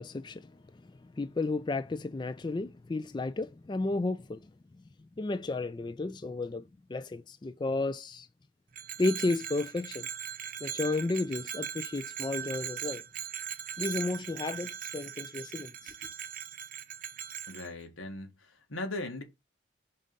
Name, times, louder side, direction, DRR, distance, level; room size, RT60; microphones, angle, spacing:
voice 1, 0.0-4.5 5.2-8.3 9.0-10.1 10.6-13.0 13.8-15.9, left 2 dB, 20° left, 0.3 m, -33 dB
Bell, 8.7-17.7, right 9 dB, 45° right, 0.6 m, -40 dB
voice 2, 17.5-19.2, left 2 dB, 90° left, 1.8 m, -39 dB
5.2 x 3.9 x 5.2 m
head